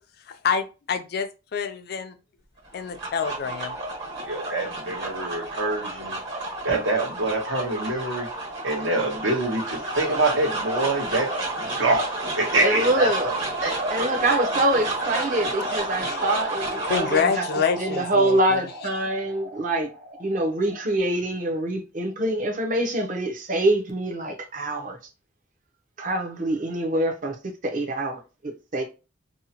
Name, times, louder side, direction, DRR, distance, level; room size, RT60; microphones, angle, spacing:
voice 1, 0.4-2.2 2.7-3.7 16.0-16.2 16.7-18.6, left 6 dB, 50° left, 0.3 m, -27 dB
sound 1, 2.7-21.0, right 2 dB, 60° right, 1.4 m, -31 dB
voice 2, 4.3-6.2 6.6-8.3 8.6-11.3 11.8-13.3 13.6-14.1, right 2 dB, 80° right, 1.0 m, -25 dB
voice 3, 12.6-13.3 13.9-17.5 17.8-19.9 20.2-25.0 26.0-27.4 27.6-28.8, right 1 dB, 40° right, 0.6 m, -25 dB
2.7 x 2.1 x 2.8 m
head